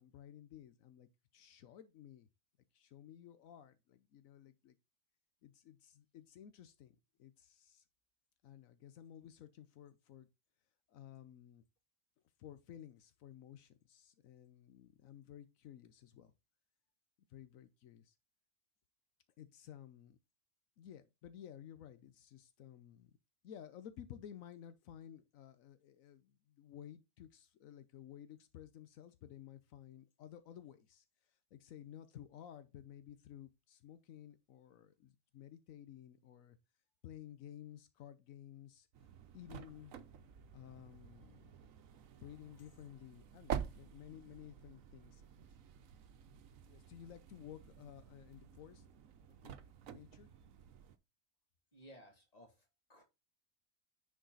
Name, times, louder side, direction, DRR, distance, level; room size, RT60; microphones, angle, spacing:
voice 1, 0.0-2.3 2.7-4.7 5.4-7.8 8.4-10.3 10.9-11.6 12.4-16.3 17.3-18.2 19.4-20.2 20.8-23.2 23.4-36.6 37.0-38.9 39.3-40.0 40.5-41.5 42.2-45.3 46.7-48.8 49.4-49.6 49.9-50.3, left 10 dB, 80° left, 1.1 m, -55 dB
sound 1, 38.9-51.0, right 8 dB, 80° right, 1.2 m, -49 dB
voice 2, 51.7-53.0, equal, 30° left, 2.4 m, -59 dB
10.0 x 5.0 x 3.9 m
omnidirectional pair, 1.4 m